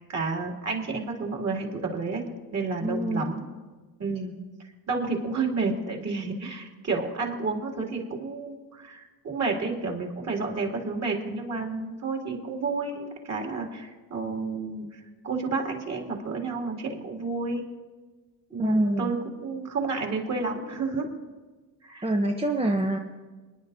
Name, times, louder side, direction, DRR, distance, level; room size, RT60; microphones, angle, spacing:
voice 1, 0.0-2.2 2.5-3.4 4.0-4.3 4.9-17.6 18.5-19.2 19.4-21.1 21.8-22.1, right 4 dB, 40° right, 0 dB, 2.7 m, -30 dB
voice 2, 2.8-3.4 18.6-19.1 22.0-23.0, right 1 dB, 15° right, 2 dB, 0.7 m, -25 dB
29.0 x 10.0 x 2.7 m, 1.3 s
cardioid pair, 110°, 43 cm